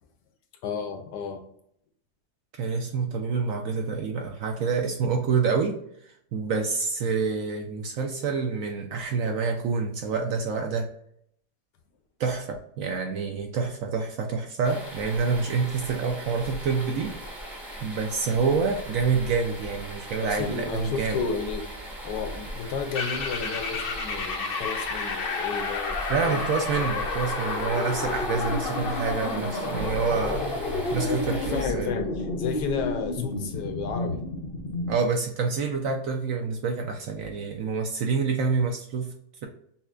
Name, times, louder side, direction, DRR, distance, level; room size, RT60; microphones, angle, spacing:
voice 1, 0.6-1.4 20.2-21.6 22.0-26.0 26.3-26.8 31.0-34.2, left 5 dB, 85° left, 5 dB, 1.3 m, -32 dB
voice 2, 2.6-5.7 6.0-10.9 12.2-17.1 17.8-21.2 26.1-30.4 30.9-31.9 34.9-39.1, right 5 dB, 70° right, 3 dB, 0.8 m, -27 dB
sound 1, 14.6-31.6, equal, ahead, 0.7 m, -39 dB
sound 2, 22.9-35.0, left 3 dB, 60° left, 0.6 m, -30 dB
5.5 x 2.1 x 2.4 m, 0.68 s
omnidirectional pair, 1.8 m